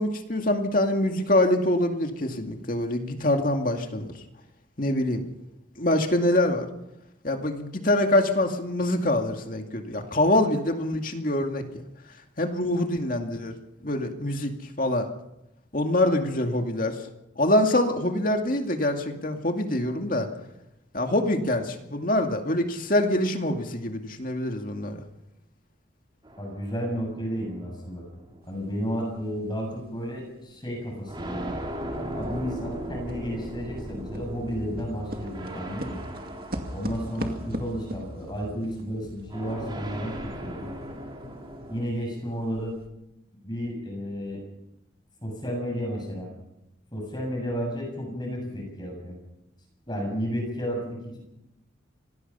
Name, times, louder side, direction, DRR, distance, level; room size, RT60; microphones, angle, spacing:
voice 1, 0.0-4.1 4.8-5.3 5.8-6.7 7.2-11.6 12.4-13.5 13.8-14.5 14.8-15.1 15.7-17.0 17.4-20.3 20.9-25.0, left 1 dB, 45° left, 4 dB, 2.3 m, -25 dB
sound 1, 26.2-29.0 29.8-29.9 31.1-38.4 39.3-41.9, right 1 dB, 25° right, 3.0 m, -38 dB
voice 2, 26.4-28.0 28.4-31.6 32.1-36.0 36.7-40.7 41.7-42.7 43.4-44.4 45.2-46.3 46.9-49.1 49.9-51.2, equal, 25° left, 1 dB, 7.2 m, -32 dB
sound 2, 28.6-28.7 29.1-31.0 31.4-40.9 41.2-41.3 41.8-41.9 42.4-42.9, right 1 dB, 50° right, 2.2 m, -40 dB
25.5 x 19.0 x 5.6 m, 0.89 s
head